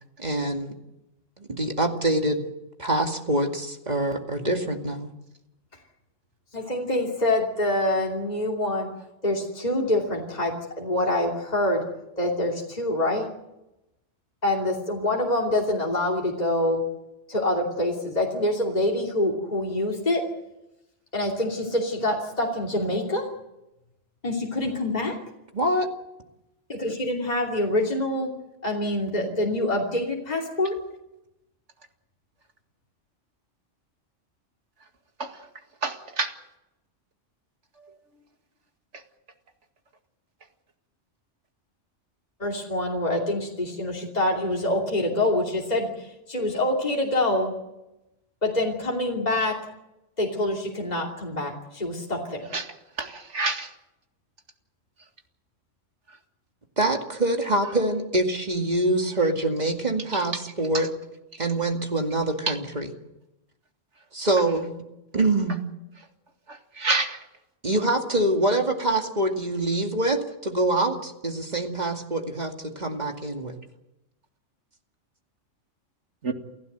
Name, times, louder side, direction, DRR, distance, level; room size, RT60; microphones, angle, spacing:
voice 1, 0.2-0.7 1.4-2.4 2.8-5.1 25.5-25.9 56.8-60.9 61.4-62.9 64.1-64.7 65.1-65.6 67.6-73.6, right 1 dB, 35° right, 3 dB, 2.4 m, -25 dB
voice 2, 6.5-8.9 9.2-11.8 12.2-13.3 14.4-16.8 17.3-20.3 21.1-23.3 24.2-25.2 26.7-28.3 28.6-30.7 42.4-47.5 48.4-49.6 50.2-52.5, left 1 dB, 35° left, -2 dB, 3.0 m, -26 dB
voice 3, 35.8-36.3 52.5-52.7 53.0-53.7 66.8-67.2 76.2-76.3, right 3 dB, 70° right, 5 dB, 2.4 m, -27 dB
29.0 x 15.0 x 8.1 m, 0.93 s
omnidirectional pair, 1.3 m